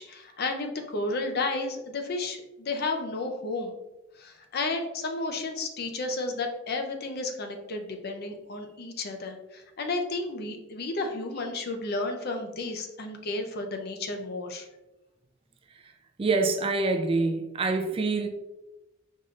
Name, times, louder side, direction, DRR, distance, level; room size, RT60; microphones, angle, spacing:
voice 1, 0.0-3.8 4.2-14.7, left 3 dB, 50° left, 4 dB, 0.6 m, -32 dB
voice 2, 16.2-18.3, right 3 dB, 30° right, 5 dB, 0.4 m, -26 dB
5.4 x 3.2 x 2.4 m, 0.99 s
head